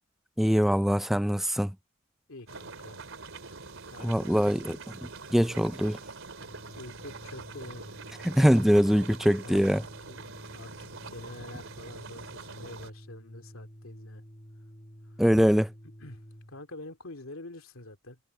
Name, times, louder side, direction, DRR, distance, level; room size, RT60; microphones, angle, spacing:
voice 1, 0.4-1.7 4.0-4.8 5.3-6.0 8.2-9.8 15.2-15.7, equal, ahead, 0.4 m, -23 dB
voice 2, 2.3-3.0 3.9-4.4 6.8-7.9 9.3-9.8 10.1-10.2 10.5-10.7 11.0-14.2 15.0-15.2 16.0-16.2 16.5-18.2, left 2 dB, 80° left, 2.5 m, -46 dB
sound 1, 2.5-12.9, right 4 dB, 70° right, 3.9 m, -44 dB
Organ, 6.3-16.6, equal, 30° left, 1.8 m, -50 dB
head